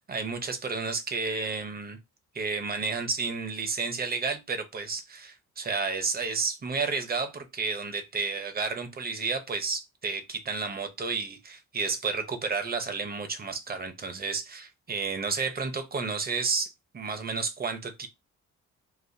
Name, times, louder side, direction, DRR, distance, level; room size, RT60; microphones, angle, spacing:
voice 1, 0.1-2.0 2.3-18.1, right 4 dB, 30° right, 0.8 m, -31 dB
4.1 x 2.4 x 2.7 m
cardioid pair, 90°, 30 cm